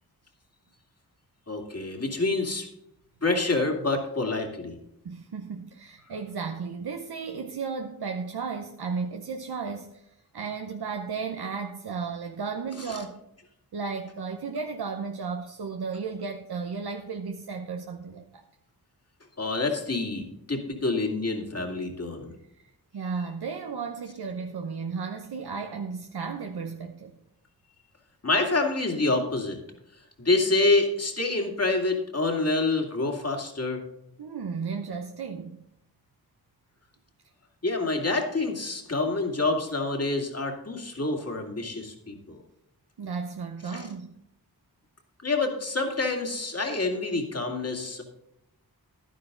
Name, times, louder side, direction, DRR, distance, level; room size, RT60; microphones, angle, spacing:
voice 1, 1.5-2.7 3.2-4.8 12.9-13.0 19.4-22.3 28.2-29.6 30.2-33.8 37.6-42.4 43.7-43.9 45.2-48.0, left 3 dB, 40° left, 2 dB, 2.4 m, -27 dB
voice 2, 5.0-13.2 13.7-18.4 22.9-27.1 34.2-35.6 43.0-44.2, right 5 dB, 90° right, 4 dB, 0.8 m, -34 dB
11.5 x 10.5 x 3.9 m, 0.80 s
wide cardioid pair, 60°, 37 cm